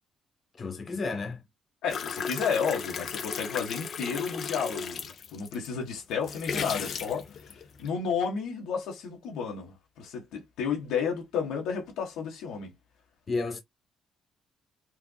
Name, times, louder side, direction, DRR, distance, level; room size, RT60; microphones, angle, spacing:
voice 1, 0.6-1.4 13.3-13.6, left 3 dB, 40° left, 1.2 m, -32 dB
voice 2, 1.8-12.7, left 6 dB, 90° left, 1.5 m, -32 dB
sound 1, 1.9-5.7 6.1-7.9, left 6 dB, 55° left, 0.6 m, -35 dB
4.6 x 2.6 x 2.3 m
cardioid pair, 90°, 0 cm